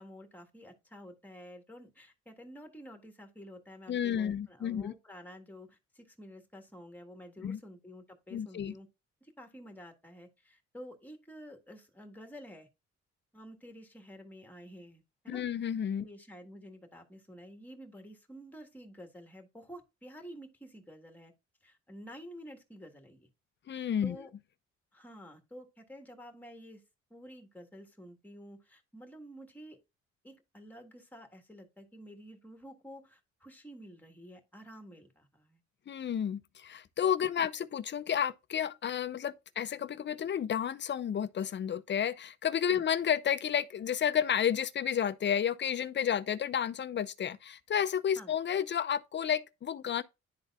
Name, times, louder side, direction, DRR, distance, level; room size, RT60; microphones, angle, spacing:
voice 1, 0.0-8.9 9.2-12.7 13.3-15.4 16.0-21.3 21.6-23.3 24.0-24.3 24.9-26.8 27.1-29.8 30.2-35.6 42.7-42.8 48.1-48.3, equal, 5° left, 1.5 m, -50 dB
voice 2, 3.9-4.9 7.4-7.6 8.3-8.7 15.3-16.1 23.7-24.2 35.9-50.0, left 9 dB, 40° left, 0.5 m, -31 dB
11.0 x 3.9 x 2.4 m
cardioid pair, 90°, 30 cm